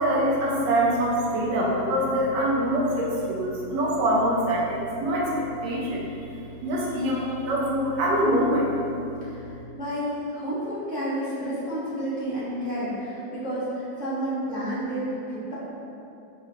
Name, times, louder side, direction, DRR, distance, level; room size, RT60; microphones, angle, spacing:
voice 1, 0.0-5.3 5.6-6.0 6.6-8.7, right 1 dB, 80° right, -4 dB, 1.4 m, -24 dB
voice 2, 9.7-15.5, right 1 dB, 5° right, -12 dB, 0.9 m, -30 dB
4.9 x 3.0 x 2.8 m, 2.8 s
omnidirectional pair, 1.9 m